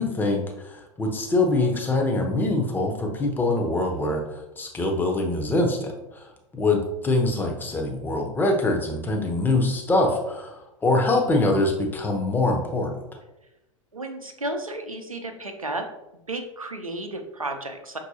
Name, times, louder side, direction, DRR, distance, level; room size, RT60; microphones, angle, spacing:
voice 1, 0.0-6.3 6.5-12.9, left 2 dB, 10° left, 1 dB, 0.7 m, -24 dB
voice 2, 13.9-15.9 16.1-18.0, right 2 dB, 85° right, 5 dB, 0.5 m, -33 dB
5.8 x 2.7 x 2.7 m, 0.93 s
figure-of-eight pair, 90°, 18 cm